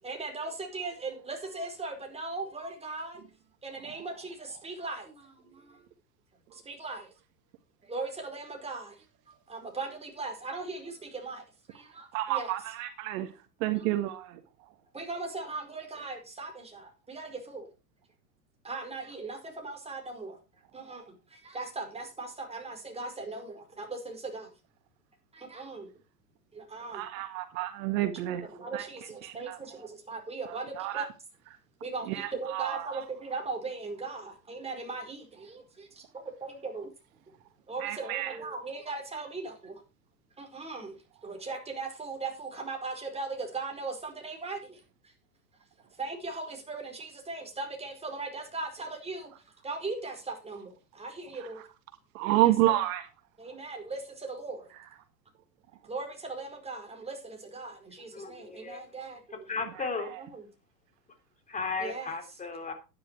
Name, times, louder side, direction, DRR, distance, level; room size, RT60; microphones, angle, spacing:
voice 1, 0.0-3.2 3.6-5.8 6.5-7.1 7.8-9.0 9.5-12.5 13.8-13.9 14.9-17.7 18.6-20.4 20.7-24.5 25.3-25.9 26.5-27.0 28.5-31.1 31.8-35.6 36.4-36.9 37.7-39.8 40.4-45.1 46.0-49.3 49.6-51.6 52.3-52.8 53.4-54.7 55.8-59.4 60.2-60.5 61.8-62.1, right 3 dB, 10° right, 4.8 m, -39 dB
voice 2, 12.1-13.3 13.6-14.7 26.9-28.4 28.7-28.9 29.2-29.6 30.5-31.1 32.1-33.0 37.8-38.4 52.1-53.1 59.8-60.2, right 15 dB, 55° right, 1.9 m, -30 dB
voice 3, 58.1-58.9 59.5-60.1 61.5-62.7, left 4 dB, 15° left, 3.5 m, -35 dB
12.0 x 10.5 x 4.6 m
supercardioid pair, 125°, 49 cm